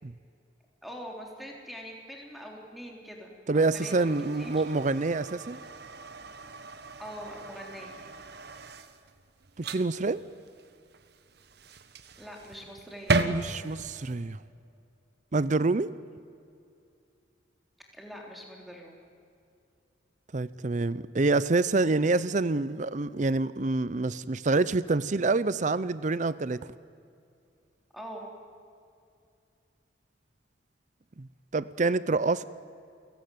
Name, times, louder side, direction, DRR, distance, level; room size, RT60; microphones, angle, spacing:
voice 1, 0.8-4.1 4.4-4.5 7.0-8.0 12.2-13.2 17.9-19.0 27.9-28.3, equal, ahead, 3.6 m, -43 dB
voice 2, 3.5-5.6 9.6-10.2 13.2-14.4 15.3-15.9 20.3-26.6 31.2-31.3 31.5-32.4, right 3 dB, 40° right, 0.6 m, -27 dB
sound 1, 3.8-14.2, right 3 dB, 55° right, 1.3 m, -36 dB
29.5 x 16.5 x 9.3 m
head